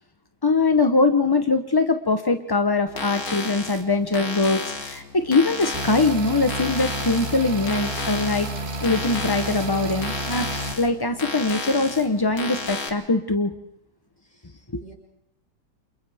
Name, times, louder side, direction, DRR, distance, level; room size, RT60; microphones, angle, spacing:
voice 1, 0.4-8.5 8.8-13.5, left 3 dB, 35° left, 6 dB, 0.3 m, -22 dB
sound 1, 2.9-12.9, left 3 dB, 55° left, 2.1 m, -33 dB
sound 2, 5.7-10.7, right 1 dB, 35° right, 2.0 m, -31 dB
voice 2, 14.2-14.9, right 3 dB, 5° left, -2 dB, 5.6 m, -51 dB
29.5 x 27.0 x 3.5 m, 0.80 s
omnidirectional pair, 1.9 m